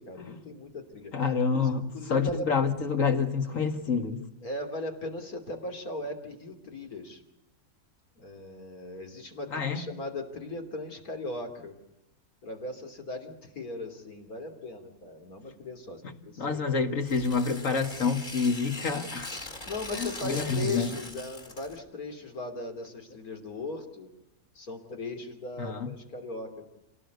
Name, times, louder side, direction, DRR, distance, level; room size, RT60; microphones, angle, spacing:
voice 1, 0.0-1.1 1.6-2.5 4.4-7.2 8.2-11.7 12.4-16.9 19.7-24.1 24.6-26.7, left 2 dB, 85° left, 3.6 m, -38 dB
voice 2, 1.1-4.2 9.5-9.8 16.4-19.3 20.0-20.9 25.6-25.9, left 5 dB, 65° left, 2.2 m, -28 dB
Tearing, 17.0-21.8, left 2 dB, 35° left, 2.5 m, -41 dB
27.5 x 18.0 x 8.2 m
omnidirectional pair, 1.5 m